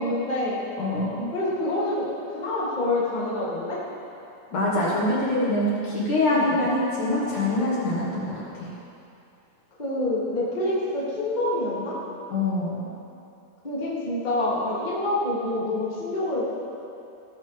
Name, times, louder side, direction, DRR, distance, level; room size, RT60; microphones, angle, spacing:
voice 1, 0.0-0.6 1.3-3.8 6.3-6.5 8.1-8.3 9.8-12.0 13.6-16.5, left 1 dB, 15° left, -7 dB, 1.8 m, -27 dB
voice 2, 0.8-1.3 4.5-8.7 12.3-12.9, left 1 dB, 55° left, -7 dB, 2.7 m, -24 dB
18.5 x 14.0 x 3.5 m, 2.7 s
omnidirectional pair, 5.1 m